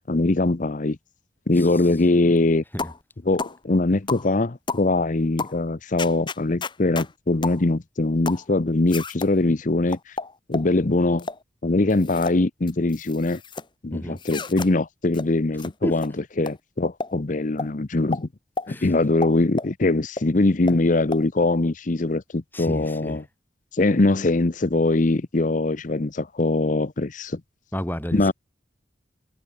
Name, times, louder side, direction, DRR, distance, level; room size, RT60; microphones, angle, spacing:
voice 1, 0.1-1.0 1.5-2.6 3.2-10.0 10.5-11.3 11.6-13.4 13.8-16.1 16.4-18.3 18.7-23.2 23.7-27.4 28.1-28.3, left 2 dB, 45° left, 0.8 m, -22 dB
sound 1, 2.8-3.0 3.4-3.6 4.1-4.3 4.7-4.9 5.4-5.6 6.0-7.1 7.4-7.6 8.3-8.5 8.9-9.3 9.9-10.7 11.2-11.4 11.9-12.4 12.7-13.7 14.2-14.7 15.1-15.3 15.6-15.7 16.0-16.1 16.5-16.6 17.0-17.1 17.6-17.7 18.1-18.2 18.6-18.7 19.2-19.7 20.2-20.3 20.7-20.8 21.1-21.2, left 3 dB, 25° left, 1.0 m, -31 dB
voice 2, 22.5-23.2 27.7-28.3, equal, 10° left, 4.8 m, -30 dB
head